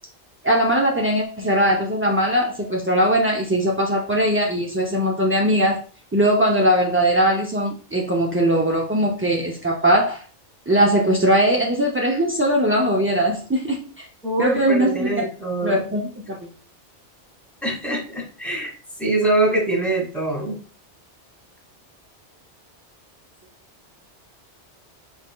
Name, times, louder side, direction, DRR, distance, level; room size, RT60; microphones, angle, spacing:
voice 1, 0.4-5.8 6.1-10.2 10.7-14.1 14.4-15.3 15.6-16.4, right 1 dB, 20° right, 0.3 m, -20 dB
voice 2, 14.2-15.8 17.6-18.7 19.0-20.6, right 2 dB, ahead, 1.8 m, -23 dB
5.5 x 4.3 x 2.2 m
omnidirectional pair, 1.2 m